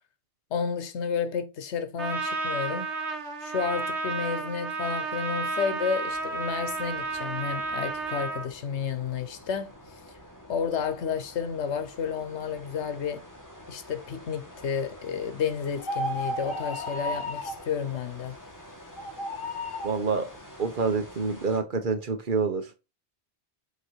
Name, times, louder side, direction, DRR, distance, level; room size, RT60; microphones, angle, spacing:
voice 1, 0.5-2.9 3.4-9.7 10.5-13.2 13.7-18.4, left 6 dB, 80° left, 1.1 m, -31 dB
Trumpet, 2.0-8.5, right 3 dB, 80° right, 1.3 m, -32 dB
sound 1, 6.1-21.6, equal, 15° left, 2.0 m, -48 dB
sound 2, 15.8-17.6 18.9-20.0, equal, 55° left, 1.0 m, -33 dB
voice 2, 19.8-20.3 20.6-22.8, right 5 dB, 50° right, 1.0 m, -27 dB
7.3 x 3.0 x 4.5 m
omnidirectional pair, 1.1 m